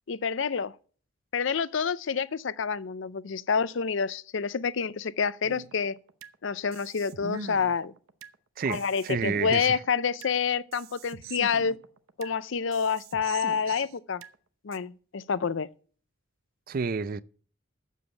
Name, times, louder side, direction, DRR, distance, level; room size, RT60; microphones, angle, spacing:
voice 1, 0.1-0.8 1.3-6.0 6.4-7.9 8.7-11.8 12.2-14.2 14.6-15.7, left 6 dB, 65° left, 0.5 m, -28 dB
sound 1, 5.4-6.3 6.7-8.3 8.7-10.3 10.7-12.3 12.7-14.3 14.7-14.8, right 4 dB, 80° right, 0.8 m, -43 dB
voice 2, 8.6-9.8 16.7-17.2, right 5 dB, 45° right, 0.4 m, -30 dB
8.2 x 7.2 x 8.0 m
head